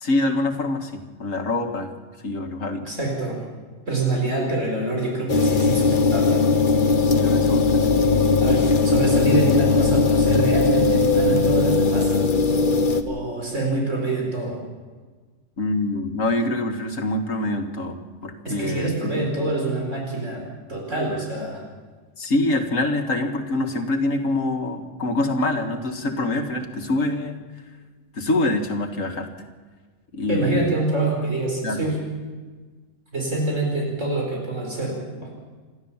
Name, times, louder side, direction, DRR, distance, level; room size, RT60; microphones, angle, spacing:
voice 1, 0.0-1.9 2.2-2.8 7.1-7.9 15.6-19.2 22.2-27.4 28.1-29.3 30.1-30.7 31.6-31.9, left 2 dB, 80° left, 5 dB, 2.3 m, -25 dB
voice 2, 2.8-3.4 3.9-6.4 8.4-12.1 13.1-14.6 18.4-20.4 20.7-21.6 30.3-32.0 33.1-35.3, right 2 dB, 70° right, -1 dB, 4.9 m, -26 dB
sound 1, 5.3-13.0, left 4 dB, 40° left, 1.3 m, -19 dB
28.0 x 12.5 x 7.3 m, 1.4 s
omnidirectional pair, 1.3 m